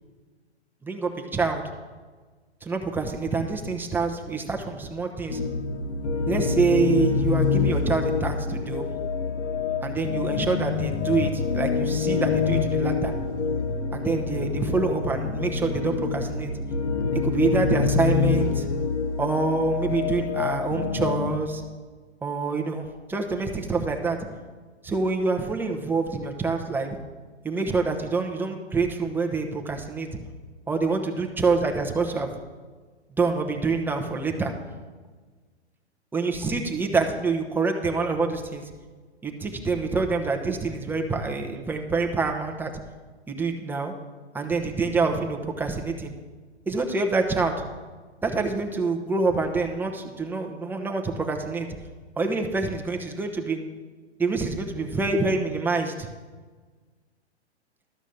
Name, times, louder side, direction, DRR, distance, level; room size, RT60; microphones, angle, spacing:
voice 1, 0.8-1.6 2.6-5.4 6.3-8.9 9.8-13.1 13.9-16.5 17.2-18.7 19.2-21.6 22.2-24.2 24.8-27.0 27.4-30.1 30.7-32.3 33.2-34.5 36.1-38.6 39.2-42.7 43.3-43.9 44.3-46.1 46.7-47.6 48.2-51.7 52.2-53.6 54.2-56.1, right 4 dB, 5° right, 3 dB, 0.8 m, -26 dB
sound 1, 5.3-21.4, left 5 dB, 75° left, 1.3 m, -26 dB
12.5 x 6.1 x 7.0 m, 1.4 s
hypercardioid pair, 125°, 34 cm